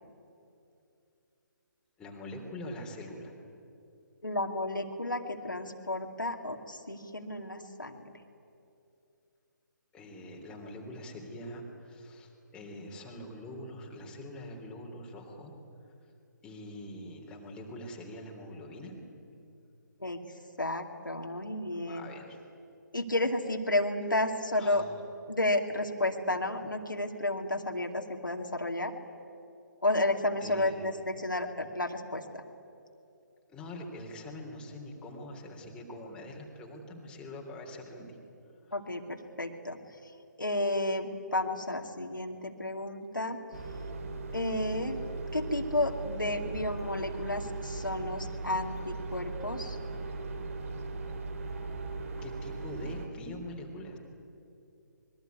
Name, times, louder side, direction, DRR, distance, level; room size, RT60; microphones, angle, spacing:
voice 1, 2.0-3.3 9.9-15.5 16.4-19.0 21.8-22.4 24.6-24.9 30.4-30.8 33.5-38.2 38.6-38.7 52.2-54.0, left 1 dB, 10° left, -1 dB, 3.4 m, -44 dB
voice 2, 4.2-8.0 20.0-20.2 20.6-22.1 22.9-24.8 25.3-28.9 29.8-32.4 38.7-39.8 40.4-43.4 44.3-45.0 45.3-49.8, left 1 dB, 85° left, 3 dB, 2.4 m, -32 dB
sound 1, 43.5-53.1, right 3 dB, 45° right, 2.9 m, -38 dB
25.5 x 22.0 x 9.5 m, 2.7 s
figure-of-eight pair, 140°, 10 cm